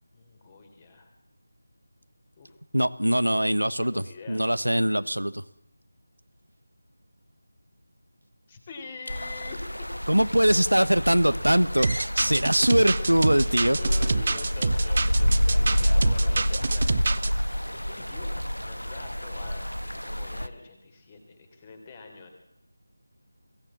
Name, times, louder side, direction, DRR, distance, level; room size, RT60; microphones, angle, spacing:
voice 1, 0.1-1.1 2.4-2.6 3.3-4.4 8.5-9.9 12.3-12.7 13.3-22.3, left 4 dB, 20° left, 5 dB, 3.7 m, -45 dB
voice 2, 2.7-5.4 10.1-13.8, equal, 85° right, 14 dB, 1.2 m, -22 dB
sound 1, 9.1-20.5, equal, 90° left, 1.4 m, -27 dB
sound 2, 11.8-17.3, right 3 dB, 40° right, 0.8 m, -27 dB
22.5 x 17.0 x 7.4 m, 0.80 s
figure-of-eight pair, 165°, 0 cm